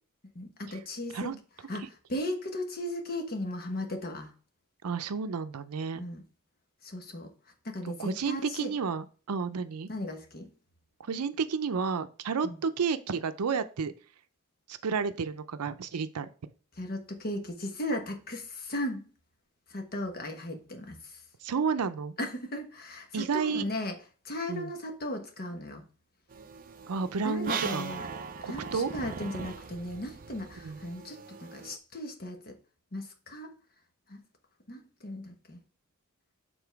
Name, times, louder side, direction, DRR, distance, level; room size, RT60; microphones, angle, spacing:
voice 1, 0.3-1.3 1.7-4.3 5.9-6.2 6.8-7.3 7.6-8.7 9.9-10.5 12.4-12.6 16.8-19.1 19.7-21.2 22.2-24.0 24.2-25.8 27.2-28.1 28.4-32.5 32.9-33.5 34.1-34.2 34.7-35.6, left 1 dB, 45° left, 4 dB, 1.2 m, -36 dB
voice 2, 4.8-6.0 8.0-9.9 11.1-13.9 14.8-16.3 21.4-22.1 23.1-23.6 24.5-24.7 26.9-27.9 28.4-28.9 30.6-30.8, right 5 dB, 85° right, 12 dB, 0.5 m, -31 dB
sound 1, 26.3-31.8, right 5 dB, 40° right, 0.5 m, -40 dB
7.0 x 3.8 x 4.6 m, 0.39 s
head